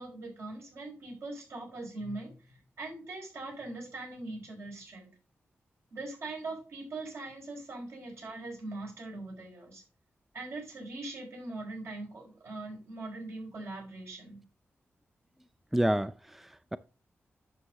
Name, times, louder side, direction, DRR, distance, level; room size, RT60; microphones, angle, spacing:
voice 1, 0.0-5.1 5.9-9.8 10.3-14.4, right 2 dB, 75° right, 5.5 m, -41 dB
voice 2, 15.7-16.8, right 1 dB, 5° right, 0.4 m, -29 dB
11.0 x 6.7 x 2.9 m
wide cardioid pair, 115°, 5 cm